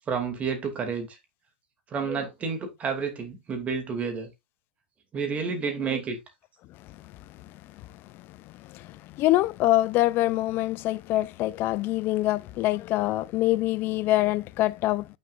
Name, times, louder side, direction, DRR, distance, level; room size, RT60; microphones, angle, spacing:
voice 1, 0.1-1.2 1.9-4.3 5.1-6.2, right 5 dB, 25° right, 2.5 m, -30 dB
voice 2, 8.1-15.2, left 16 dB, 40° left, 0.5 m, -25 dB
8.7 x 6.4 x 2.5 m
hypercardioid pair, 120°, 6 cm